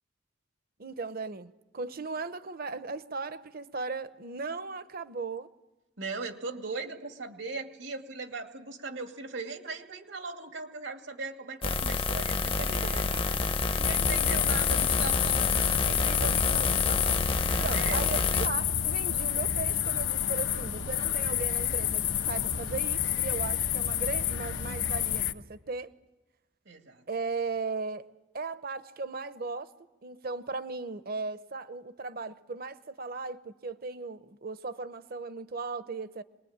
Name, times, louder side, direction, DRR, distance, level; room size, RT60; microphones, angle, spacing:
voice 1, 0.8-5.5 12.5-13.6 15.6-17.2 17.6-25.9 27.1-28.1 28.3-29.7 30.0-36.2, right 4 dB, 55° right, 0.9 m, -37 dB
voice 2, 6.0-13.0 13.7-15.7 17.7-18.2 26.7-27.0, right 3 dB, 85° right, 2.5 m, -38 dB
sound 1, 11.6-18.5, left 3 dB, 30° left, 0.7 m, -28 dB
sound 2, 13.8-25.3, left 10 dB, 90° left, 1.1 m, -29 dB
26.0 x 21.0 x 8.8 m
head